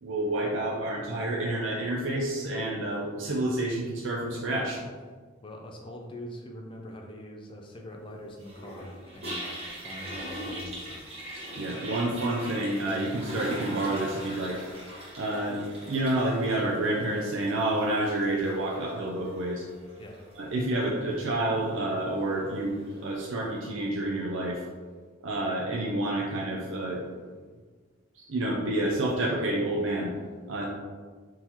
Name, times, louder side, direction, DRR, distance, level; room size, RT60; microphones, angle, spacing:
voice 1, 0.0-4.8 11.6-14.6 15.2-19.6 20.4-24.6 25.2-27.0 28.1-30.1 30.5-30.6, right 1 dB, 70° right, -3 dB, 0.6 m, -29 dB
voice 2, 5.4-11.1 20.0-20.2, equal, 25° left, 1 dB, 0.5 m, -43 dB
Toilet flush, 8.4-23.6, equal, 30° right, 1.3 m, -42 dB
4.2 x 3.8 x 3.0 m, 1.5 s
head